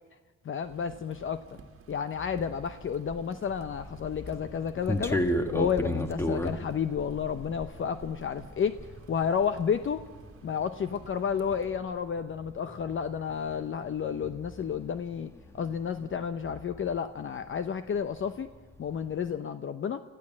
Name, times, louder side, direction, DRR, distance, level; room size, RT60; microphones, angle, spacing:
voice 1, 0.5-1.4 1.9-8.8 9.1-10.0 10.4-18.5 18.8-20.0, left 7 dB, 40° left, 10 dB, 0.8 m, -31 dB
sound 1, 0.6-11.7, right 5 dB, 45° right, 1.8 m, -52 dB
sound 2, 2.2-17.7 18.0-19.2, equal, 10° left, 1.6 m, -36 dB
24.0 x 14.5 x 7.5 m, 1.3 s
cardioid pair, 90°, 30 cm